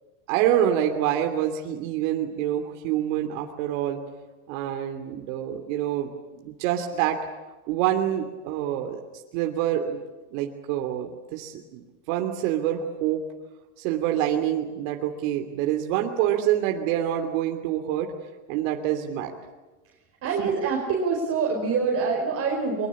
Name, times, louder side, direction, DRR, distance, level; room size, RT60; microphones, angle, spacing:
voice 1, 0.3-4.0 4.5-6.1 6.4-7.2 7.7-9.0 9.3-10.0 10.3-13.2 13.8-18.1 18.5-19.3 20.4-20.5, right 11 dB, 65° right, 4 dB, 3.0 m, -26 dB
voice 2, 20.2-22.9, right 5 dB, 35° right, 0 dB, 5.0 m, -25 dB
23.5 x 22.5 x 8.5 m, 1.2 s
supercardioid pair, 130°, 43 cm